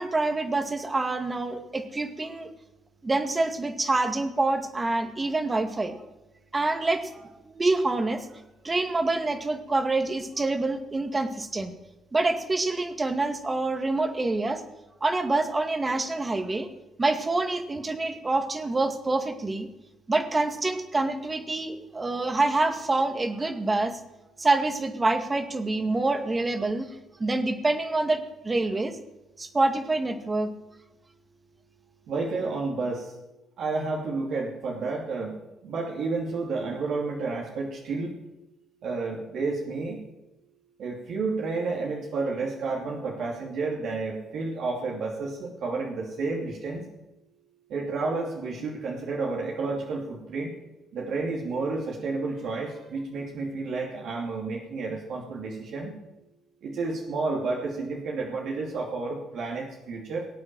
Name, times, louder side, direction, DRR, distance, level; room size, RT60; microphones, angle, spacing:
voice 1, 0.0-2.5 3.0-6.0 6.5-8.3 8.6-11.7 12.1-14.6 15.0-16.7 17.0-19.7 20.1-24.0 24.4-26.9 27.2-29.0 29.4-30.5, right 2 dB, 25° right, 8 dB, 2.1 m, -26 dB
voice 2, 32.1-33.2 33.6-35.4 35.6-38.1 38.8-40.0 40.8-46.8 47.7-50.5 50.9-55.9 56.6-60.3, right 3 dB, 70° right, -2 dB, 3.0 m, -31 dB
18.5 x 8.7 x 7.7 m, 0.97 s
supercardioid pair, 65°, 0 cm